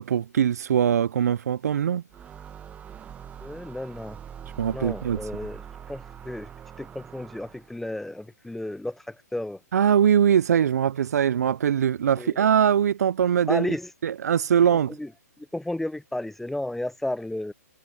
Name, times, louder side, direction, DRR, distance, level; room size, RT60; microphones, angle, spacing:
voice 1, 0.0-2.0 4.6-5.2 9.7-13.7 14.0-15.0, right 8 dB, 65° right, 0.5 m, -22 dB
sound 1, 2.1-7.8, right 8 dB, 15° right, 1.5 m, -43 dB
voice 2, 3.4-4.2 4.7-6.5 6.8-9.6 12.2-12.4 13.5-13.9 14.9-15.1 15.4-17.5, left 1 dB, 5° left, 0.7 m, -33 dB
hypercardioid pair, 130°, 9 cm